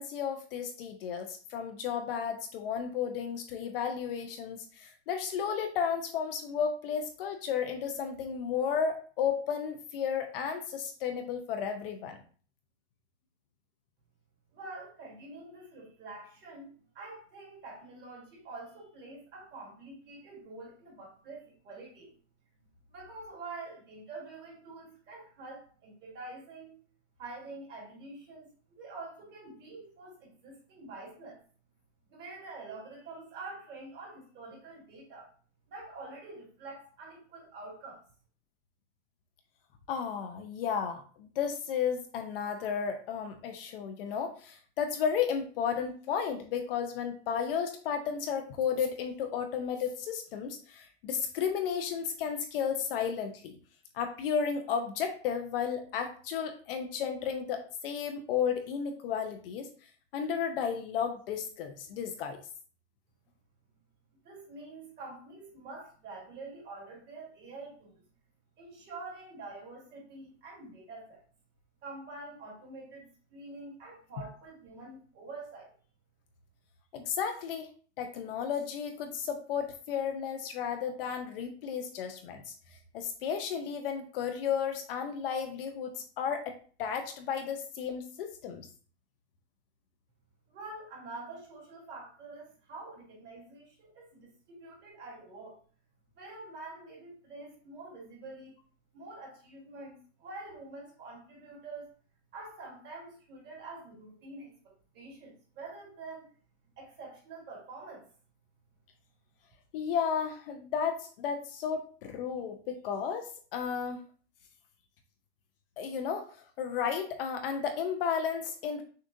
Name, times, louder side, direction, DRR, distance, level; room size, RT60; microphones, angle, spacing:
voice 1, 0.0-12.2 39.9-53.6 53.9-59.7 60.1-62.4 76.9-77.7 78.0-82.5 82.9-86.5 86.8-88.7 109.7-114.0 115.8-118.8, left 7 dB, 50° left, 6 dB, 0.6 m, -33 dB
voice 2, 14.5-22.2 22.9-26.8 27.2-31.4 32.1-35.3 35.7-38.0 64.2-68.0 68.6-71.2 71.8-75.7 90.5-95.6 96.2-98.5 98.9-101.9 102.3-106.3 106.8-108.1, right 3 dB, 25° right, -2 dB, 1.8 m, -46 dB
6.4 x 2.4 x 2.5 m, 0.42 s
supercardioid pair, 150°, 36 cm